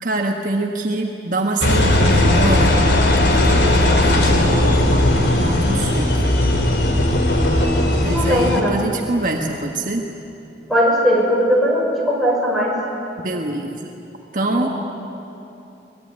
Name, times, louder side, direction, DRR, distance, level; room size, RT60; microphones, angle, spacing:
voice 1, 0.0-2.8 3.3-6.3 8.0-10.1 13.2-14.0 14.3-14.7, right 2 dB, 50° right, 2 dB, 1.5 m, -25 dB
Engine, 1.6-8.6, left 1 dB, 75° left, 3.0 m, -17 dB
voice 2, 8.1-8.8 10.7-12.8 14.4-14.7, equal, ahead, -3 dB, 5.5 m, -19 dB
24.0 x 20.5 x 9.7 m, 2.8 s
head